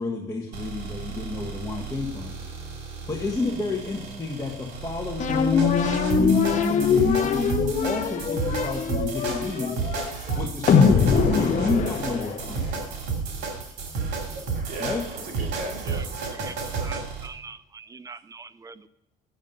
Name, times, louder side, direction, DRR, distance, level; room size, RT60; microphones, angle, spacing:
voice 1, 0.0-2.3 3.1-9.8 10.3-12.9 14.8-15.0, left 3 dB, 20° left, 1.4 m, -31 dB
sound 1, 0.5-17.3, right 5 dB, 80° right, 2.6 m, -32 dB
sound 2, 5.2-12.7, left 6 dB, 45° left, 1.0 m, -22 dB
voice 2, 14.2-16.5, right 1 dB, 55° right, 2.4 m, -37 dB
voice 3, 16.8-18.9, right 4 dB, 20° right, 0.5 m, -43 dB
9.2 x 7.3 x 5.4 m
cardioid pair, 110°, 17 cm